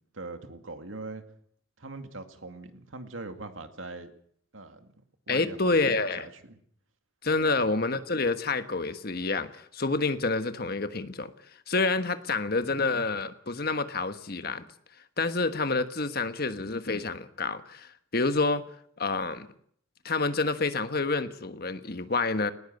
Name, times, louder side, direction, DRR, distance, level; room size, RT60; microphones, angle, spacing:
voice 1, 0.1-1.2 1.8-4.1 4.5-4.9 5.3-6.6 7.4-7.7, right 3 dB, 85° right, 7 dB, 2.3 m, -41 dB
voice 2, 5.3-6.3 7.2-11.3 11.7-14.6 15.2-18.6 19.0-19.5 20.0-22.5, left 3 dB, 50° left, 10 dB, 1.4 m, -28 dB
19.5 x 17.5 x 8.0 m, 0.64 s
head